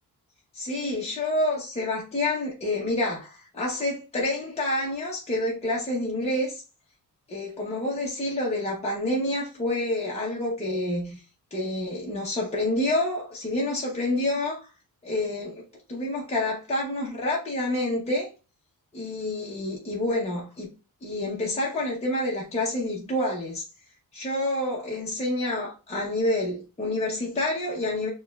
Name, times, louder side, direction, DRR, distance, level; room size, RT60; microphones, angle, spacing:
voice 1, 0.5-6.6 7.3-11.2 11.5-14.7 15.0-18.3 18.9-20.7 21.0-23.6 24.1-28.1, left 1 dB, 15° left, 0.8 m, -28 dB
6.4 x 2.3 x 2.3 m
wide cardioid pair, 150°, 37 cm